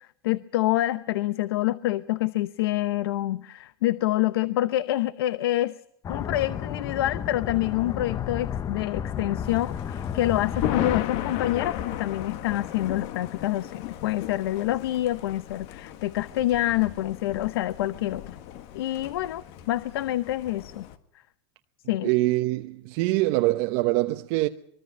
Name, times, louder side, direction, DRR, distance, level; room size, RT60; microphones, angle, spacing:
voice 1, 0.2-5.8 6.1-18.2 18.7-20.9 21.9-22.1, left 15 dB, 85° left, 0.8 m, -27 dB
sound 1, 6.0-11.0, left 8 dB, 30° left, 0.9 m, -32 dB
Thunder, 9.4-21.0, left 11 dB, 55° left, 1.7 m, -35 dB
voice 2, 22.0-24.5, right 19 dB, 60° right, 1.0 m, -24 dB
24.0 x 23.0 x 5.3 m
supercardioid pair, 130°, 12 cm